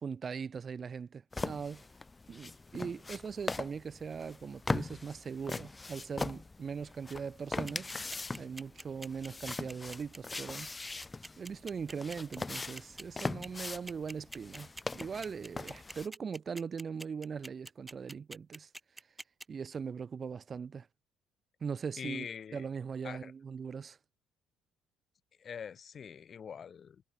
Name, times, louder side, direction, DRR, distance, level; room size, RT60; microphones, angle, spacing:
voice 1, 0.0-1.8 2.3-7.9 8.4-10.7 11.4-18.7 19.5-20.9 21.6-24.0, right 6 dB, 40° right, 1.1 m, -40 dB
sound 1, 1.3-16.1, left 3 dB, 20° left, 3.0 m, -41 dB
sound 2, 7.7-19.4, right 1 dB, 10° right, 1.2 m, -45 dB
voice 2, 22.0-22.7 23.0-23.3 25.4-27.0, left 7 dB, 45° left, 3.0 m, -44 dB
figure-of-eight pair, 50°, 0 cm